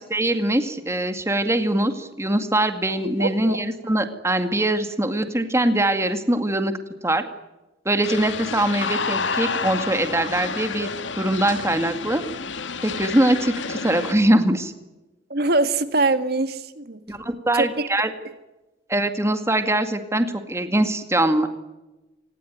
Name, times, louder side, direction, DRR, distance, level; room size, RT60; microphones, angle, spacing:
voice 1, 0.1-6.7 7.0-7.2 7.9-10.9 11.1-12.2 12.8-14.7 17.1-18.1 18.9-21.5, right 1 dB, 15° right, 8 dB, 2.1 m, -22 dB
voice 2, 3.2-3.6 15.3-17.0 17.5-17.9, right 2 dB, 55° right, 10 dB, 1.9 m, -23 dB
sound 1, 8.0-14.1, left 5 dB, 85° left, 2.2 m, -29 dB
26.5 x 20.0 x 9.4 m, 1.0 s
head